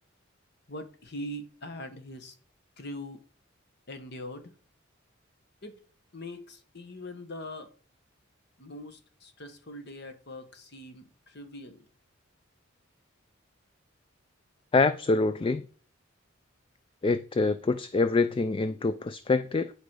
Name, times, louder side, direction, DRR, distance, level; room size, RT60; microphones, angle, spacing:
voice 1, 0.7-2.3 2.8-3.2 3.9-4.5 5.6-5.8 6.1-7.7 8.6-11.8, left 1 dB, 55° left, 1.4 m, -42 dB
voice 2, 14.7-15.7 17.0-19.7, left 3 dB, 25° left, 0.3 m, -25 dB
10.5 x 5.2 x 4.8 m
head